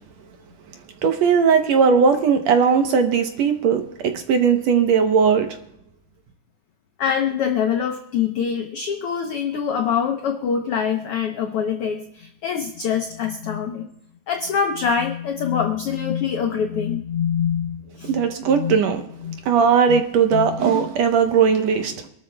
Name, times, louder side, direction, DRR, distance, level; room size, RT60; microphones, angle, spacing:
voice 1, 1.0-5.6 18.1-19.0 19.5-22.1, right 6 dB, 70° right, 6 dB, 1.8 m, -18 dB
voice 2, 7.0-13.9 14.3-18.8 19.2-19.4 19.9-20.0 20.3-20.6, left 7 dB, 85° left, 4 dB, 1.2 m, -24 dB
26.5 x 12.5 x 2.2 m, 0.77 s
omnidirectional pair, 3.7 m